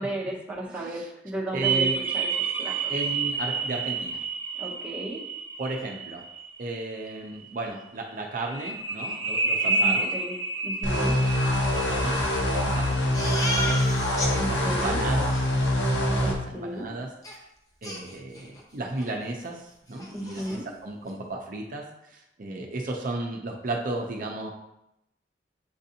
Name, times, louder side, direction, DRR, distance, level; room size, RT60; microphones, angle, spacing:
voice 1, 0.0-1.9 2.1-2.3 2.6-2.9 4.6-5.2 9.7-10.3 10.6-11.1 14.3-15.0 16.2-16.9 20.1-20.6, right 1 dB, 5° right, -5 dB, 0.9 m, -34 dB
voice 2, 0.7-1.1 1.5-2.0 2.9-4.2 5.6-6.2 6.6-10.1 10.9-11.3 11.6-15.4 15.8-17.1 17.8-24.5, right 2 dB, 50° right, 1 dB, 0.6 m, -35 dB
sound 1, 1.6-7.2 8.5-13.3, right 4 dB, 35° right, 1.1 m, -30 dB
sound 2, 10.8-16.3, left 1 dB, 85° left, 0.9 m, -24 dB
Crying sobbing, 13.1-14.3 14.7-14.8 15.0-15.4 17.2-17.3 17.8-18.6 19.0-19.1 19.5-19.6 19.9-20.6, left 1 dB, 20° left, 0.7 m, -33 dB
7.4 x 2.6 x 2.7 m, 0.84 s
head